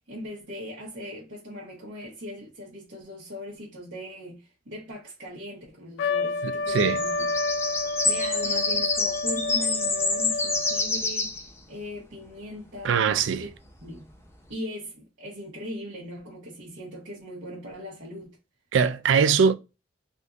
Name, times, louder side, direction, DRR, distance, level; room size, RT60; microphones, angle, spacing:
voice 1, 0.1-7.3 8.0-11.4 11.7-13.5 13.8-14.1 14.5-18.4, equal, 70° right, 1.1 m, -39 dB
Trumpet, 6.0-11.0, left 3 dB, 80° left, 0.3 m, -29 dB
voice 2, 6.4-7.0 12.8-13.4 18.7-19.5, right 6 dB, 90° right, 0.4 m, -22 dB
sound 1, 6.7-11.5, left 3 dB, 15° left, 0.5 m, -27 dB
3.5 x 2.6 x 2.4 m
head